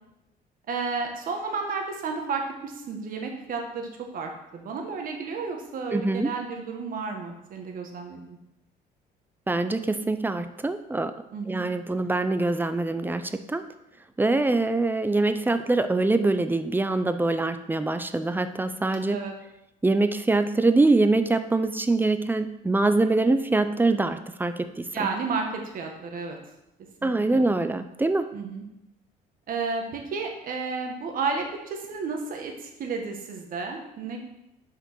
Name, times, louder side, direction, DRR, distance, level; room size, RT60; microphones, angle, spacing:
voice 1, 0.7-8.4 11.3-11.6 19.1-19.3 24.9-26.4 27.0-27.4 28.3-28.6 29.5-34.2, right 4 dB, 55° right, 3 dB, 1.6 m, -32 dB
voice 2, 5.9-6.3 9.5-11.1 11.5-13.6 14.2-19.2 19.8-24.8 27.0-28.3, right 2 dB, 10° right, 10 dB, 0.5 m, -24 dB
6.5 x 5.1 x 6.2 m, 0.88 s
cardioid pair, 110°, 17 cm